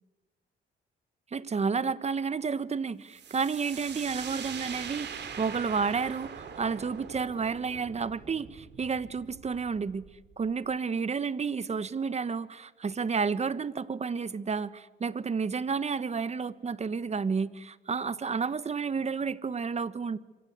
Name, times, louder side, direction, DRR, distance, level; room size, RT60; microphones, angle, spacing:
voice 1, 1.3-10.1 10.4-20.2, right 5 dB, 35° right, 16 dB, 1.2 m, -31 dB
sound 1, 3.1-10.7, right 7 dB, 60° right, 3.5 m, -42 dB
26.5 x 25.0 x 8.3 m, 1.1 s
cardioid pair, 90°, 20 cm